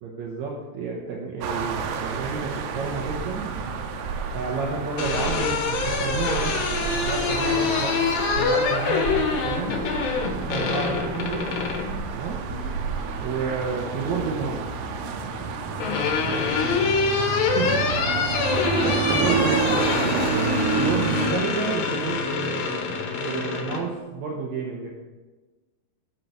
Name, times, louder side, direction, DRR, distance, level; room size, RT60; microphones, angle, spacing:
voice 1, 0.0-3.5 4.3-7.9 8.4-9.8 10.4-11.6 12.1-12.4 13.2-14.6 17.2-18.0 19.1-19.8 20.7-24.9, right 5 dB, 75° right, -2 dB, 1.7 m, -30 dB
sound 1, 1.4-21.3, right 5 dB, 90° right, 2.8 m, -29 dB
sound 2, 4.7-11.9 13.4-14.1 15.3-23.8, left 5 dB, 70° left, 2.6 m, -25 dB
voice 2, 10.8-11.1 12.4-12.7 16.1-17.3 17.6-20.4, right 2 dB, 20° right, -7 dB, 3.2 m, -38 dB
8.5 x 6.3 x 6.8 m, 1.2 s
omnidirectional pair, 4.7 m